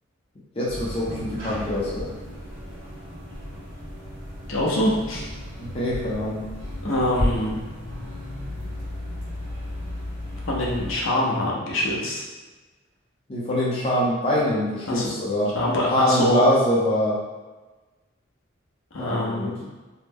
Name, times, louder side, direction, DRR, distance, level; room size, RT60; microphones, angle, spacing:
voice 1, 0.6-2.1 5.6-6.5 13.3-15.5 15.9-17.2 19.0-19.6, left 1 dB, 30° left, -6 dB, 0.5 m, -24 dB
sound 1, 0.6-11.0, left 1 dB, 90° right, 1.3 m, -34 dB
voice 2, 4.5-5.3 6.8-7.5 10.5-12.2 14.9-15.1 15.5-16.4 18.9-19.6, left 1 dB, 75° left, -3 dB, 0.7 m, -24 dB
3.1 x 2.0 x 3.5 m, 1.2 s
head